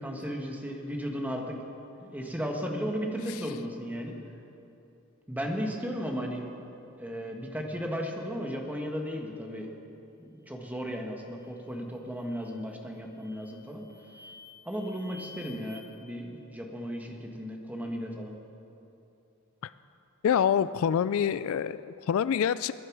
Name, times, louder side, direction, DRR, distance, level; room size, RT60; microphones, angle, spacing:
voice 1, 0.0-1.6 2.0-4.1 5.3-6.5 7.0-9.7 10.2-13.8 14.6-18.4, equal, 10° right, 1 dB, 1.5 m, -35 dB
sound 1, 11.4-11.7 12.1-12.7 13.2-15.8, left 3 dB, 35° right, 1.6 m, -52 dB
voice 2, 20.2-22.7, left 8 dB, 70° left, 16 dB, 0.3 m, -26 dB
21.5 x 11.0 x 4.8 m, 2.8 s
head